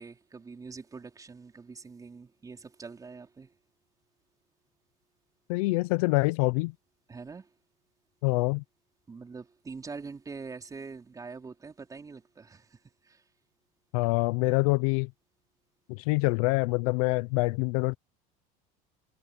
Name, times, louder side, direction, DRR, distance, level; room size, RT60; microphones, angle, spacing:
voice 1, 0.0-3.5 7.1-7.5 9.1-13.2, right 4 dB, 20° right, 4.4 m, -44 dB
voice 2, 5.5-6.7 8.2-8.6 13.9-15.1 15.9-18.0, left 26 dB, 85° left, 0.6 m, -25 dB
supercardioid pair, 120°, 18 cm